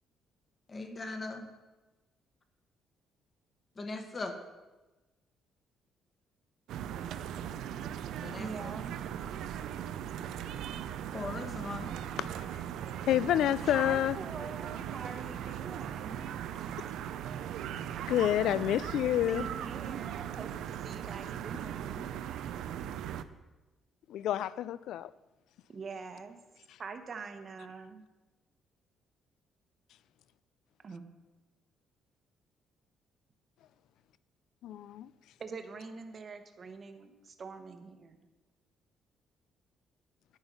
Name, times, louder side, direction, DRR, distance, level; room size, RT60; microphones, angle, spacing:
voice 1, 0.7-1.5 3.8-4.3 8.2-8.7 11.1-11.9, left 2 dB, 25° left, 5 dB, 1.2 m, -39 dB
sound 1, 6.7-23.2, right 10 dB, 80° right, 0.5 m, -39 dB
voice 2, 8.4-9.0 13.6-16.4 19.3-22.1 25.7-26.4 26.8-28.0 30.8-31.1 35.4-38.2, right 5 dB, 35° right, 8 dB, 1.0 m, -44 dB
voice 3, 13.0-14.2 18.1-19.4 24.1-25.1 34.6-35.1, left 12 dB, 75° left, 17 dB, 0.4 m, -28 dB
9.6 x 9.1 x 5.5 m, 1.1 s
cardioid pair, 150°, 0 cm